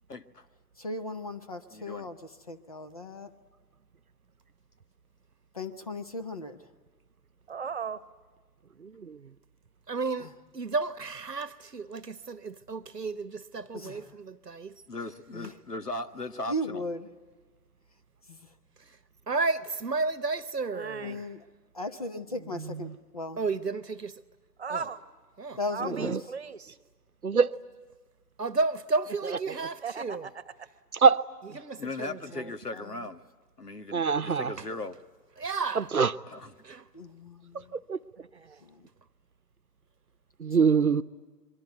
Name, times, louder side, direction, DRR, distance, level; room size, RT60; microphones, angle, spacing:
voice 1, 0.1-0.4 1.7-2.1 14.9-16.8 31.8-33.2 33.6-35.0 36.3-36.5, left 2 dB, 75° left, 1.7 m, -38 dB
voice 2, 0.8-3.3 5.5-6.7 10.2-10.3 13.7-14.1 15.3-15.5 16.5-17.1 18.3-18.4 21.0-21.4 21.7-23.4 25.6-26.2 32.3-33.1 36.9-37.8 38.6-38.9 40.6-40.7, left 1 dB, 25° left, 0.9 m, -37 dB
voice 3, 7.5-8.0 20.7-21.2 24.6-25.0 25.7-26.8 29.8-30.7 38.2-38.6, right 5 dB, 40° right, 1.2 m, -37 dB
voice 4, 8.8-9.2 22.5-22.9 25.9-26.2 27.2-27.5 31.0-31.2 31.5-31.6 33.9-34.5 35.7-36.1 37.7-38.0 40.4-41.0, right 5 dB, 65° right, 1.0 m, -24 dB
voice 5, 9.9-14.8 19.3-21.2 23.4-24.2 24.7-24.8 25.4-25.6 28.4-30.3 31.5-32.5 34.6-34.7 35.4-35.9 36.6-36.9, right 3 dB, 80° right, 1.2 m, -32 dB
27.0 x 23.5 x 9.1 m
figure-of-eight pair, 150°, 47 cm